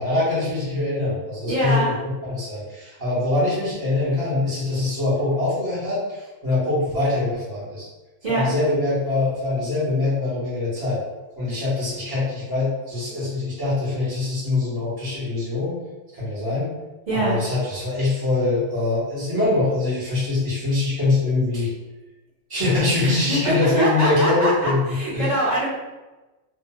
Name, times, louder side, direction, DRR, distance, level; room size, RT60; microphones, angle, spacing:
voice 1, 0.0-7.9 8.3-11.0 11.4-15.7 16.1-16.7 17.1-21.7 22.5-25.4, left 2 dB, 20° right, -10 dB, 1.1 m, -23 dB
voice 2, 1.5-1.9 8.2-8.4 17.1-17.4 23.0-25.7, right 1 dB, 35° right, -13 dB, 1.0 m, -24 dB
2.9 x 2.4 x 2.3 m, 1.1 s
omnidirectional pair, 1.3 m